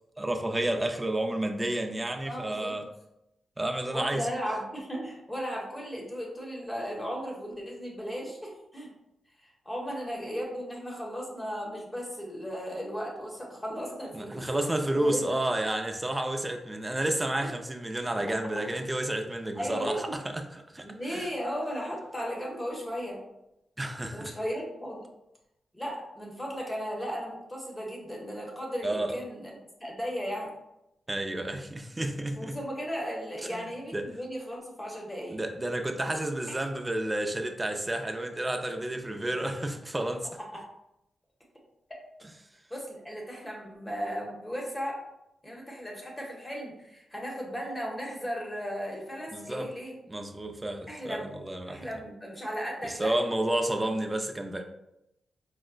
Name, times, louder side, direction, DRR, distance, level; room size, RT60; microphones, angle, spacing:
voice 1, 0.2-2.8 3.6-4.3 14.1-20.5 20.7-21.3 23.8-24.4 28.8-29.2 31.1-32.6 33.5-33.7 33.9-34.1 35.3-40.3 49.3-49.7 50.1-51.9 52.8-54.6, right 1 dB, 15° right, 4 dB, 0.4 m, -31 dB
voice 2, 2.3-2.7 3.9-8.9 9.4-14.5 14.9-15.4 19.6-20.1 20.8-23.2 24.1-25.1 25.7-29.5 29.8-30.5 32.4-35.4 36.5-36.6 39.5-39.6 40.5-40.6 42.7-45.0 45.4-50.0 50.9-51.3 51.7-53.1, equal, 15° left, -2 dB, 1.0 m, -36 dB
4.8 x 2.1 x 2.2 m, 0.86 s
cardioid pair, 95°, 0 cm